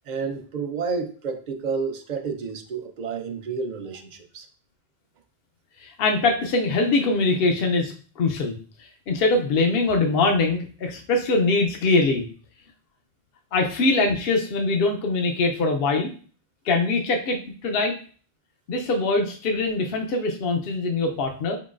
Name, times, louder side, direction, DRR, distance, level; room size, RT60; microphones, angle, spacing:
voice 1, 0.1-4.5, right 5 dB, 55° right, 5 dB, 0.6 m, -30 dB
voice 2, 5.8-12.3 13.5-16.1 16.6-17.9 18.7-21.6, left 3 dB, 70° left, 2 dB, 0.8 m, -23 dB
4.5 x 3.8 x 2.4 m, 0.41 s
omnidirectional pair, 1.1 m